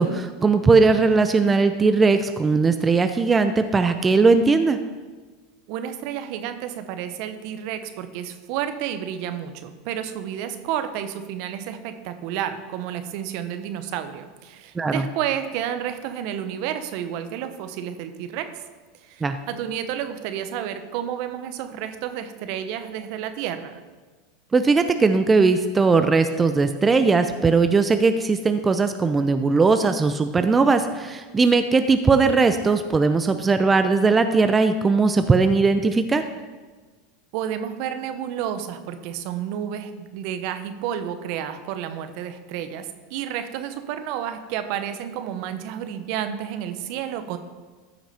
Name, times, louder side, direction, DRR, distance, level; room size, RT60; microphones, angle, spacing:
voice 1, 0.0-4.8 14.7-15.1 19.2-19.4 24.5-36.2, right 4 dB, 20° right, 9 dB, 0.6 m, -19 dB
voice 2, 5.7-18.5 19.0-23.8 37.3-47.4, right 10 dB, 60° right, 9 dB, 0.9 m, -31 dB
13.5 x 6.0 x 4.3 m, 1.4 s
hypercardioid pair, 100°, 0 cm